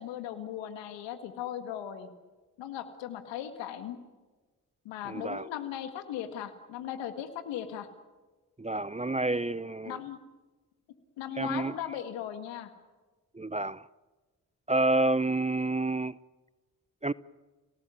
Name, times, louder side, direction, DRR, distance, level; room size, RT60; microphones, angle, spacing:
voice 1, 0.0-2.1 2.6-4.0 4.9-7.9 9.9-10.2 11.2-12.7, left 10 dB, 90° left, 2.0 m, -38 dB
voice 2, 5.1-5.5 8.6-10.0 11.4-11.7 13.3-13.8 14.7-16.2 17.0-17.1, right 2 dB, 15° right, 0.8 m, -29 dB
29.5 x 18.5 x 9.2 m
hypercardioid pair, 40°, 43 cm